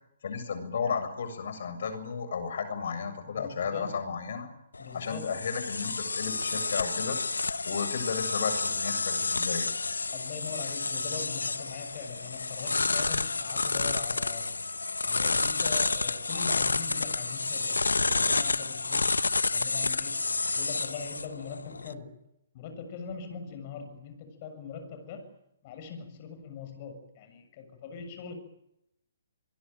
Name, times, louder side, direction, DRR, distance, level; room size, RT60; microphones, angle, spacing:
voice 1, 0.2-4.5 4.9-7.2 7.6-9.7, left 6 dB, 60° left, 7.4 m, -33 dB
voice 2, 3.2-4.0 4.8-5.3 10.1-14.8 15.0-22.1 22.5-25.4 25.6-28.3, left 6 dB, 40° left, 7.0 m, -42 dB
sound 1, 4.7-21.9, left 3 dB, 85° left, 1.1 m, -30 dB
26.0 x 22.0 x 9.3 m
hypercardioid pair, 135°, 0 cm